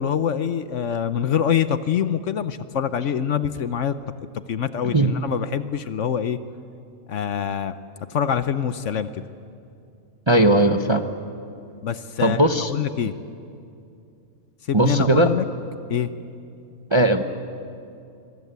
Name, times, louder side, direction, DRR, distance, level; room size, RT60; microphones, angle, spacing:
voice 1, 0.0-3.9 4.5-6.4 7.1-7.7 8.1-9.2 11.8-12.4 12.7-13.1 14.7-15.4 15.9-16.1, left 8 dB, 60° left, 12 dB, 1.0 m, -24 dB
voice 2, 4.8-5.2 10.3-11.1 12.2-12.7 14.7-15.3 16.9-17.2, right 1 dB, 25° right, 7 dB, 0.7 m, -18 dB
24.5 x 22.5 x 8.2 m, 2.5 s
omnidirectional pair, 1.5 m